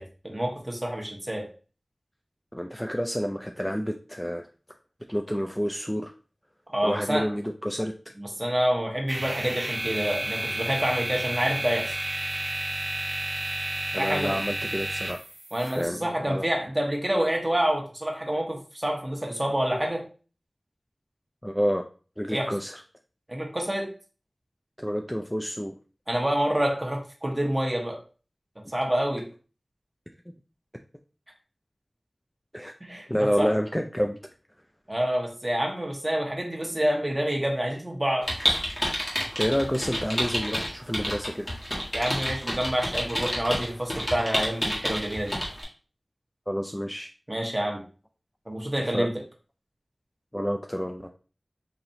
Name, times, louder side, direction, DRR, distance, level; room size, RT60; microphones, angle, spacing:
voice 1, 0.0-1.5 6.7-7.3 8.2-12.0 13.9-14.4 15.5-20.0 22.3-22.5 23.3-23.9 26.1-28.0 28.7-29.3 32.8-33.1 33.4-33.5 34.9-38.3 41.9-45.4 47.3-47.8 48.5-49.1, right 1 dB, 25° right, 0 dB, 1.1 m, -27 dB
voice 2, 2.5-4.5 5.1-6.1 6.8-7.9 13.9-15.2 15.6-16.4 21.4-21.8 22.2-22.8 24.8-25.7 32.5-32.7 33.1-34.2 39.4-41.5 46.5-47.1 48.8-49.1 50.3-51.1, equal, 5° left, 4 dB, 0.3 m, -29 dB
sound 1, 9.1-15.9, right 1 dB, 55° right, 1.2 m, -31 dB
sound 2, 38.2-45.6, equal, 25° left, 1.5 m, -29 dB
4.1 x 2.9 x 2.7 m, 0.37 s
wide cardioid pair, 60°, 0 cm